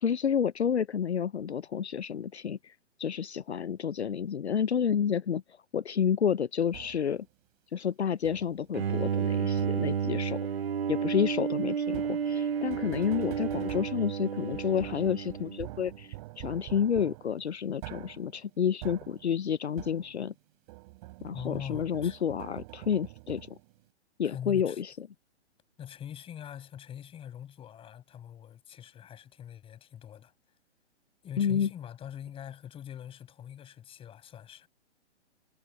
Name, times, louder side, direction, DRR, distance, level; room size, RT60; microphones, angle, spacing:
voice 1, 0.0-7.3 7.7-10.4 10.9-20.3 21.2-23.6 24.2-25.1 31.4-31.7, left 8 dB, 70° left, 0.7 m, -30 dB
sound 1, 6.7-7.2 8.2-8.7 9.6-10.1 11.9-20.4 20.7-23.8, right 22 dB, 35° right, 5.7 m, -46 dB
Bowed string instrument, 8.7-16.0, right 7 dB, 60° right, 1.4 m, -31 dB
voice 2, 21.3-22.2 24.2-24.8 25.8-30.3 31.2-34.7, left 10 dB, 15° left, 6.5 m, -43 dB
figure-of-eight pair, 125°, 34 cm